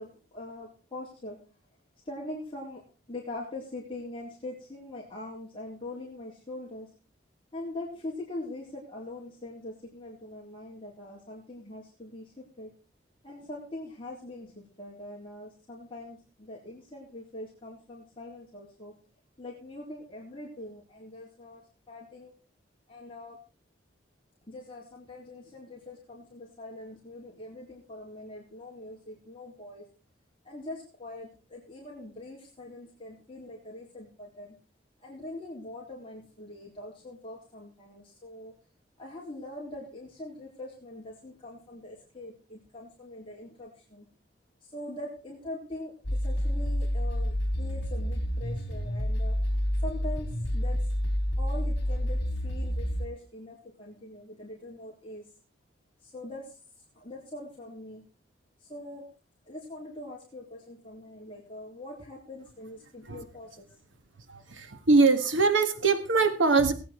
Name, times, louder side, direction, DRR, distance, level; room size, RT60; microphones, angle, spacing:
voice 1, 0.0-1.4 2.0-6.9 7.5-12.7 13.2-18.9 19.4-22.3 22.9-23.4 24.5-29.9 30.4-34.6 35.0-38.5 39.0-44.1 44.6-49.4 49.8-50.8 51.4-55.3 56.0-56.6 57.0-58.1 58.6-59.0 59.5-63.7, left 1 dB, 25° left, -4 dB, 3.8 m, -43 dB
sound 1, 46.0-53.1, equal, 60° left, 3.9 m, -29 dB
voice 2, 64.3-66.7, right 4 dB, 80° right, 8 dB, 1.7 m, -23 dB
20.0 x 8.9 x 4.5 m, 0.34 s
head